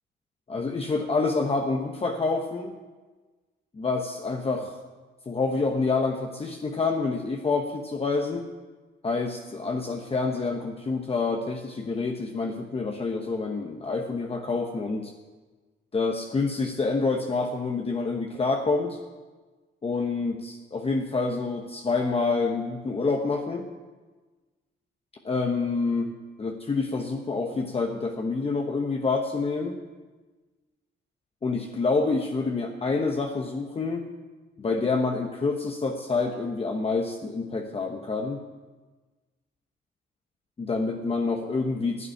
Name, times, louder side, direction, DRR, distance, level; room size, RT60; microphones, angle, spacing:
voice 1, 0.5-2.8 3.7-4.7 5.3-8.5 9.0-15.1 15.9-19.0 19.8-23.7 25.2-29.8 31.4-34.1 34.6-38.4 40.6-42.1, left 3 dB, 30° left, 2 dB, 1.1 m, -27 dB
11.0 x 8.6 x 9.2 m, 1.3 s
cardioid pair, 90°, 20 cm